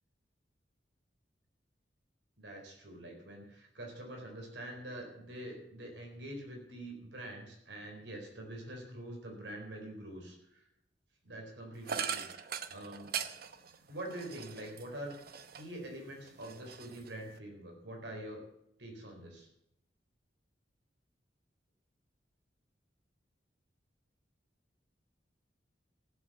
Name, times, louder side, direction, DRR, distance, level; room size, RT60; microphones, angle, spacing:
voice 1, 2.4-10.6 11.2-13.1 13.9-15.2 15.5-18.4 18.8-19.5, right 1 dB, 75° right, 1 dB, 4.2 m, -45 dB
sound 1, 11.9-15.8 16.2-17.4, right 7 dB, 55° right, 0.8 m, -41 dB
15.5 x 7.9 x 6.8 m, 0.81 s
head